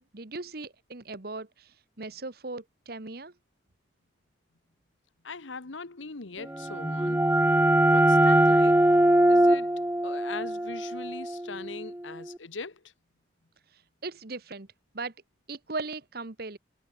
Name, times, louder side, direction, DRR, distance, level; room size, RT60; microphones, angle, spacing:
voice 1, 0.1-3.3 14.0-14.7 14.9-15.1 15.5-16.6, right 3 dB, 55° right, 1.3 m, -38 dB
voice 2, 5.2-7.2 7.8-8.8 9.3-9.7 10.0-12.8, left 4 dB, 90° left, 1.3 m, -40 dB
sound 1, 6.5-12.0, right 1 dB, 10° right, 0.7 m, -22 dB
head